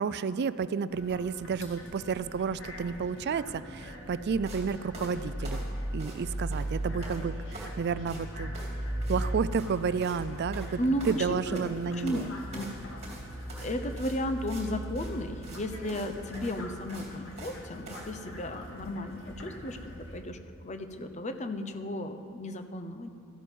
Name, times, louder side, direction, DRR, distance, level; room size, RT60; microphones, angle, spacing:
voice 1, 0.0-5.6 5.9-8.5 9.1-10.8 11.1-12.3, right 6 dB, 50° right, 16 dB, 0.3 m, -31 dB
sound 1, 0.9-20.2, right 1 dB, 60° left, 1.9 m, -39 dB
sound 2, 4.5-4.6 4.9-6.2 6.5-7.2 7.5-7.8 8.1-8.2 8.5-8.8 9.0-9.2 9.5-9.7 10.0-10.2 10.5-11.7 12.1-12.3 12.5-14.6 14.9-15.1 15.4-15.6 15.9-16.1 16.3-17.6 17.9-18.0, right 2 dB, 30° right, 2.7 m, -46 dB
voice 2, 10.8-12.7 13.6-20.4 20.6-23.1, left 1 dB, 30° left, 8 dB, 0.8 m, -34 dB
13.5 x 12.0 x 5.3 m, 2.3 s
head